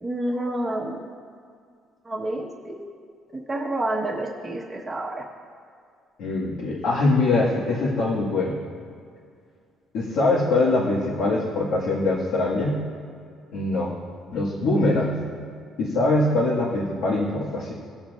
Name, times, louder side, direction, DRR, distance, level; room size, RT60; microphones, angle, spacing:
voice 1, 0.0-1.0 2.1-2.4 3.5-5.2, right 1 dB, 10° right, -4 dB, 1.1 m, -28 dB
voice 2, 6.2-8.6 9.9-12.8 13.5-13.9 14.3-15.2 15.8-17.7, left 2 dB, 70° left, -7 dB, 1.7 m, -23 dB
19.5 x 7.2 x 2.4 m, 2.2 s
cardioid pair, 170°, 0 cm